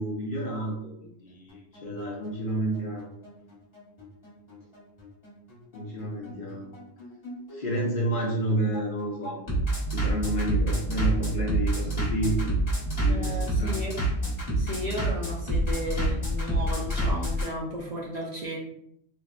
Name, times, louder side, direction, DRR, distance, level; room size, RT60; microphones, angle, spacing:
voice 1, 0.0-0.9 1.2-3.1 5.7-6.7 7.5-9.4 9.9-12.5 13.0-13.7, right 1 dB, 55° left, -2 dB, 0.7 m, -30 dB
voice 2, 1.0-1.4 6.3-6.4 13.1-14.0 14.6-18.6, right 1 dB, 55° right, -3 dB, 0.5 m, -34 dB
Bass drum, 1.5-17.5, right 1 dB, 25° left, 1.3 m, -28 dB
3.5 x 2.1 x 2.4 m, 0.73 s
omnidirectional pair, 1.2 m